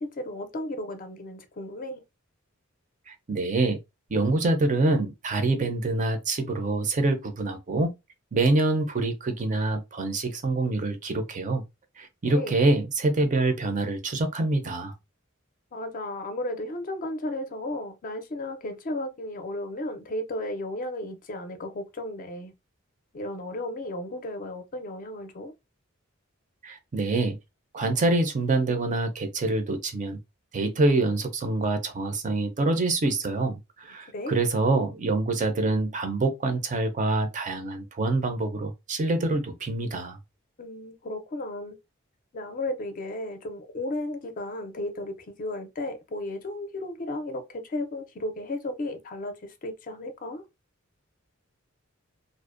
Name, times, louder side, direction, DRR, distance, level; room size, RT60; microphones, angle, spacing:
voice 1, 0.0-2.0 12.2-12.5 15.7-22.5 23.1-25.5 34.1-34.4 40.6-41.8 42.3-50.4, left 1 dB, 40° left, 0.4 m, -34 dB
voice 2, 3.1-3.8 4.1-7.9 8.3-11.6 12.0-14.9 26.6-27.4 27.7-30.2 30.5-40.2, right 2 dB, 40° right, 0.5 m, -26 dB
2.5 x 2.0 x 2.4 m
head